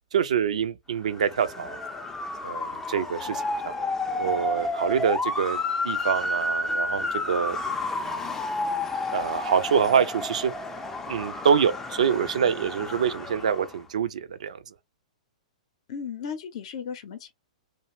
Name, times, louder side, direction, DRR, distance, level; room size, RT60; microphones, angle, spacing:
voice 1, 0.1-1.8 2.4-3.7 4.2-5.6 5.8-7.6 7.9-8.1 9.1-10.5 11.1-14.7, right 7 dB, 70° right, 0.4 m, -25 dB
Motor vehicle (road) / Siren, 1.1-13.8, left 2 dB, 10° left, 0.4 m, -31 dB
voice 2, 15.9-17.3, left 7 dB, 55° left, 0.6 m, -35 dB
2.4 x 2.0 x 2.9 m
hypercardioid pair, 115°, 4 cm